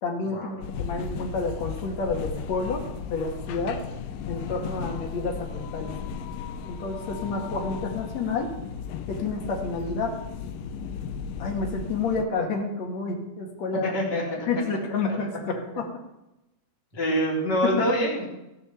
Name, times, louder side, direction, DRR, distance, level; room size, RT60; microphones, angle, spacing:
voice 1, 0.0-2.8 3.1-3.8 4.3-5.9 6.7-8.5 9.1-10.2 11.4-13.9 14.5-15.8 17.1-17.2 17.6-17.7, left 4 dB, 55° left, 2 dB, 2.7 m, -29 dB
sound 1, 0.6-12.3, left 7 dB, 75° left, 2.2 m, -35 dB
voice 2, 4.5-4.8 13.9-14.4 15.1-15.2 16.9-18.3, equal, 30° left, -4 dB, 4.1 m, -26 dB
17.0 x 7.0 x 7.1 m, 0.95 s
omnidirectional pair, 4.2 m